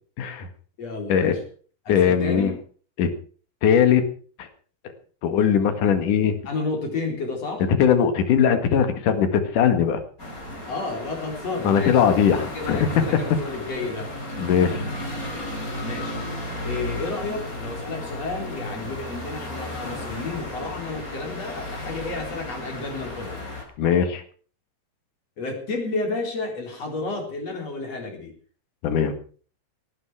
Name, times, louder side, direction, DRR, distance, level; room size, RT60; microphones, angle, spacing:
voice 1, 0.2-0.5 1.1-1.4 1.9-2.5 3.0-3.1 3.6-4.0 4.4-4.5 5.2-6.4 7.8-10.0 11.6-13.4 14.4-14.9 23.8-24.2 28.8-29.1, left 8 dB, 55° left, 9 dB, 2.9 m, -20 dB
voice 2, 0.8-1.4 1.8-2.5 6.4-7.6 10.7-12.0 12.5-14.1 15.8-16.2 16.6-23.4 25.4-28.3, left 3 dB, 35° left, 2 dB, 4.7 m, -31 dB
sound 1, 10.2-23.6, left 1 dB, 20° left, 4.2 m, -34 dB
18.0 x 10.0 x 6.2 m, 0.42 s
omnidirectional pair, 5.1 m